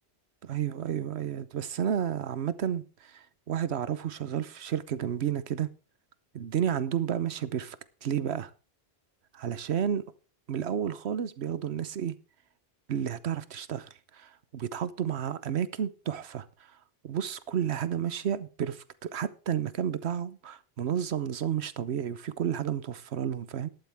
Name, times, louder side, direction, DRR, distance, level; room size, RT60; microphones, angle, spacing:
voice 1, 0.4-5.7 6.3-8.5 9.4-10.0 10.5-12.2 12.9-16.5 17.0-23.7, right 9 dB, 85° right, 1.1 m, -31 dB
13.0 x 11.5 x 3.5 m
omnidirectional pair, 1.1 m